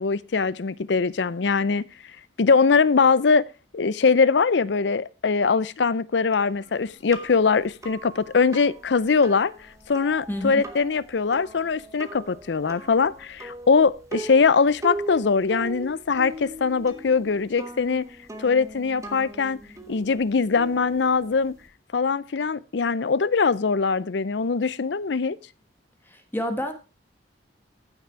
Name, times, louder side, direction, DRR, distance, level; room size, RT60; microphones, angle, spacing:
voice 1, 0.0-1.8 2.4-3.4 3.7-9.5 9.9-18.1 18.4-19.6 19.9-21.5 21.9-25.4, left 5 dB, 70° left, 0.5 m, -22 dB
sound 1, 6.3-21.7, right 1 dB, 15° right, 1.4 m, -40 dB
voice 2, 10.3-10.6 26.1-26.7, equal, 10° left, 1.4 m, -29 dB
14.5 x 6.1 x 4.5 m
head